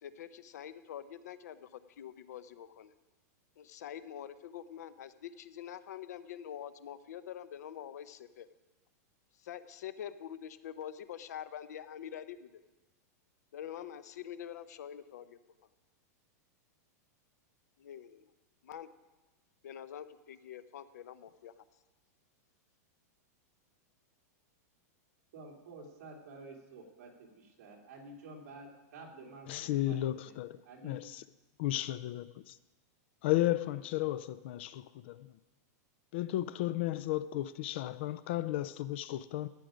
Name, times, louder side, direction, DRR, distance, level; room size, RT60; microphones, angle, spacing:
voice 1, 0.0-2.9 3.6-8.5 9.4-12.6 13.5-15.4 17.8-18.3 18.6-18.9 19.6-21.5, left 10 dB, 75° left, 0.7 m, -45 dB
voice 2, 25.3-27.3 27.6-30.4 30.6-31.0, right 2 dB, 50° right, 2.8 m, -50 dB
voice 3, 29.5-30.6 30.8-31.2 31.6-32.6 33.2-35.3 36.1-39.5, left 14 dB, 40° left, 0.3 m, -34 dB
14.0 x 9.2 x 5.1 m
supercardioid pair, 175°, 9 cm